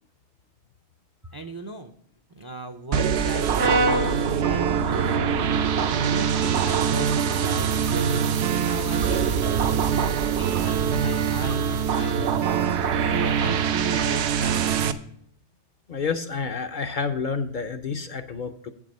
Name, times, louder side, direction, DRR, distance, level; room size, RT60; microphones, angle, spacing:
voice 1, 1.3-1.9 2.3-5.3 5.6-6.3 6.6-8.1 8.6-12.6 13.0-14.8, right 2 dB, 30° right, 6 dB, 0.4 m, -37 dB
sound 1, 2.9-14.9, right 7 dB, 75° right, 0.9 m, -23 dB
Brass instrument, 3.6-7.8, right 1 dB, 90° right, 1.3 m, -30 dB
voice 2, 15.9-18.7, left 5 dB, 55° left, 7 dB, 0.6 m, -29 dB
8.0 x 7.4 x 5.2 m, 0.65 s
omnidirectional pair, 1.2 m